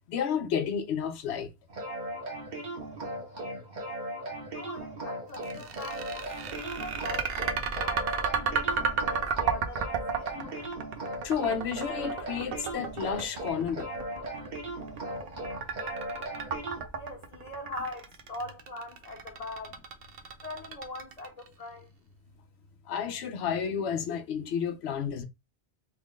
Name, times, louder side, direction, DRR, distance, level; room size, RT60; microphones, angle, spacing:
voice 1, 0.1-1.5 8.4-8.7 10.4-10.5 11.2-13.9 22.9-25.2, left 7 dB, 80° left, 0.9 m, -31 dB
sound 1, 1.7-16.8, right 1 dB, 45° right, 1.1 m, -38 dB
voice 2, 4.4-8.1 8.6-9.9 10.1-10.6 16.9-19.8 20.4-21.9, left 2 dB, 40° left, 1.1 m, -42 dB
sound 2, 5.3-21.5, right 6 dB, 65° right, 0.8 m, -33 dB
3.2 x 2.4 x 3.6 m
omnidirectional pair, 1.1 m